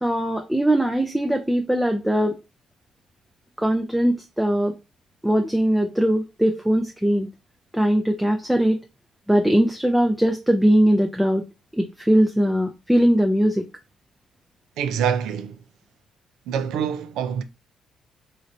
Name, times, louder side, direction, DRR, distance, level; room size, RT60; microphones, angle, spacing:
voice 1, 0.0-2.4 3.6-4.8 5.2-7.3 7.7-8.8 9.3-11.4 11.7-13.6, equal, 5° right, 0.5 m, -20 dB
voice 2, 14.8-15.6 16.5-17.4, right 8 dB, 90° right, 0.4 m, -25 dB
3.9 x 3.2 x 2.6 m
cardioid pair, 90°, 0 cm